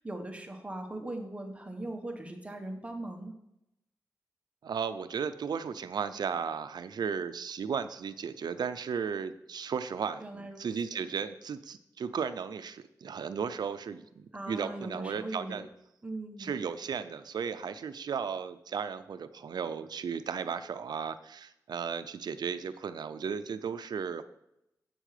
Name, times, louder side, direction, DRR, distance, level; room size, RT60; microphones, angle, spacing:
voice 1, 0.0-3.3 10.2-11.0 14.3-15.6 16.0-16.6, right 1 dB, 20° right, 4 dB, 1.2 m, -40 dB
voice 2, 4.6-15.7 16.4-24.2, right 6 dB, 85° right, 12 dB, 0.6 m, -35 dB
10.0 x 8.4 x 5.0 m, 0.82 s
wide cardioid pair, 135°, 7 cm